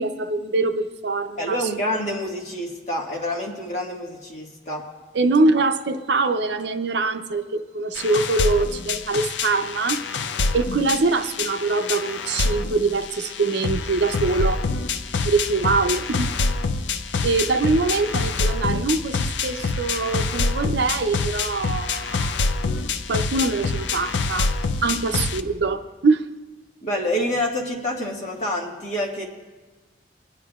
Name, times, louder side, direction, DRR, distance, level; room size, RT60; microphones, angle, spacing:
voice 1, 0.0-1.6 5.1-10.0 10.5-14.6 15.2-16.4 17.2-22.3 23.1-24.5 24.8-26.2, right 3 dB, 70° right, 8 dB, 0.6 m, -23 dB
voice 2, 1.4-4.8 26.8-29.2, equal, 40° left, -2 dB, 1.7 m, -27 dB
sound 1, 8.0-25.4, left 4 dB, 80° left, 0.5 m, -26 dB
23.0 x 9.8 x 2.4 m, 1.3 s
head